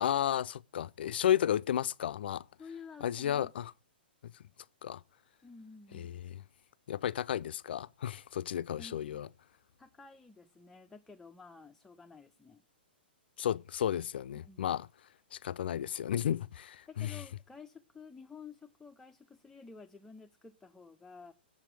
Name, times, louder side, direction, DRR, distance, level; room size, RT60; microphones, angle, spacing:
voice 1, 0.0-2.4 3.0-3.7 4.2-4.3 4.8-5.0 5.9-6.4 6.9-9.3 13.4-14.9 15.3-17.2, left 10 dB, 70° left, 0.3 m, -33 dB
voice 2, 2.6-3.5 5.4-6.3 8.8-9.3 9.8-12.6 14.4-14.8 16.9-21.3, left 5 dB, 5° left, 0.4 m, -52 dB
7.5 x 7.3 x 4.6 m
hypercardioid pair, 125°, 6 cm